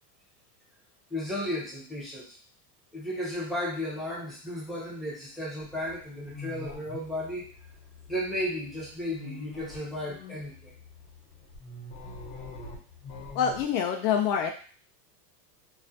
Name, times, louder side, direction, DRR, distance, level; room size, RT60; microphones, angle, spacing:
voice 1, 1.1-2.4 2.9-7.5 8.1-10.7, left 1 dB, ahead, -7 dB, 0.4 m, -34 dB
sound 1, 5.6-13.7, left 3 dB, 60° left, 1.0 m, -45 dB
voice 2, 13.3-14.5, left 7 dB, 80° left, 4 dB, 0.6 m, -26 dB
2.3 x 2.1 x 2.6 m, 0.41 s
supercardioid pair, 140°, 50 cm